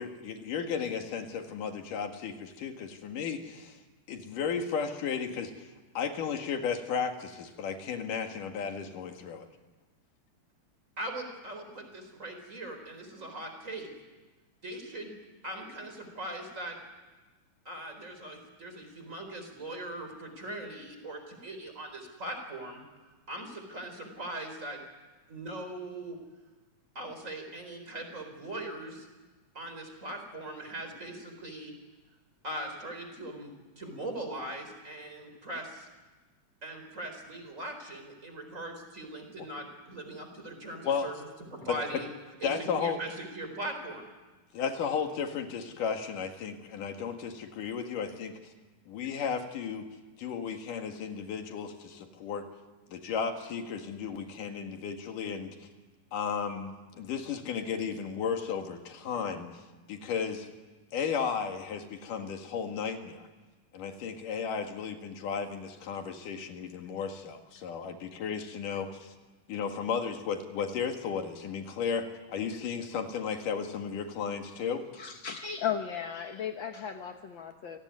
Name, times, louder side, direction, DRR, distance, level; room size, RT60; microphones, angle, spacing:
voice 1, 0.0-3.8 4.1-5.7 6.0-9.5 40.8-41.1 41.6-41.8 42.4-43.0 44.5-48.4 48.9-49.9 50.2-52.5 52.9-55.6 56.1-60.5 60.9-63.2 63.7-69.1 69.5-74.8, left 6 dB, 85° left, 5 dB, 3.5 m, -34 dB
voice 2, 11.0-13.9 14.6-15.1 15.4-16.8 17.6-22.8 23.3-24.8 25.3-26.2 26.9-29.1 29.5-31.7 32.4-33.5 33.8-35.9 36.6-41.1 41.5-42.1 42.4-44.1, right 1 dB, 25° right, 5 dB, 4.6 m, -40 dB
voice 3, 74.9-77.8, left 8 dB, 65° left, 5 dB, 1.2 m, -35 dB
28.5 x 18.5 x 9.5 m, 1.2 s
omnidirectional pair, 3.6 m